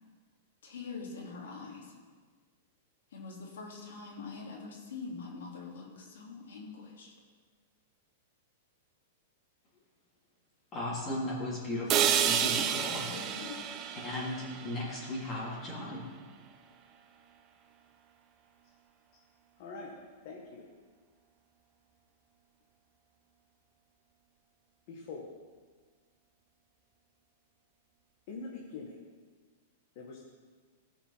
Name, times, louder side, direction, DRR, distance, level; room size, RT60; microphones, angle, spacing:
voice 1, 0.6-1.9 3.1-7.1 13.1-13.6, left 4 dB, 85° left, -2 dB, 3.2 m, -44 dB
voice 2, 10.7-13.1 14.0-16.0, left 1 dB, 25° left, -6 dB, 3.4 m, -36 dB
sound 1, 11.9-15.9, right 8 dB, 30° right, 0.8 m, -31 dB
voice 3, 19.6-19.9 20.2-20.7 24.9-25.3 28.3-28.9 30.0-30.3, left 4 dB, 45° left, -2 dB, 1.7 m, -43 dB
17.0 x 6.0 x 5.8 m, 1.5 s
supercardioid pair, 155°, 0 cm